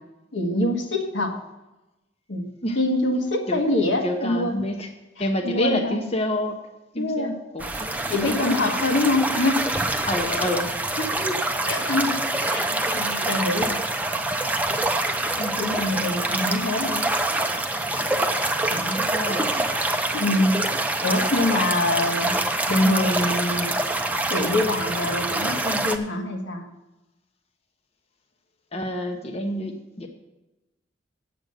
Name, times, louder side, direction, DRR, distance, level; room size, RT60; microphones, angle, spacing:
voice 1, 0.3-1.4 2.3-2.5 2.8-4.6 5.2-6.1 7.0-7.3 8.1-9.7 11.0-11.1 11.7-13.9 15.4-17.1 18.0-18.1 18.7-19.0 20.2-20.6 21.0-22.4 22.7-23.8 24.3-26.7, left 2 dB, 80° left, 2 dB, 1.6 m, -25 dB
voice 2, 4.0-4.9 5.2-6.6 6.9-7.9 8.3-8.7 10.1-10.7 11.1-11.4 13.3-13.4 19.0-19.5 20.1-20.2 28.7-30.1, left 1 dB, 35° left, 4 dB, 0.9 m, -28 dB
sound 1, 7.6-26.0, right 2 dB, 10° right, 0.7 m, -25 dB
9.2 x 7.6 x 6.5 m, 1.0 s
head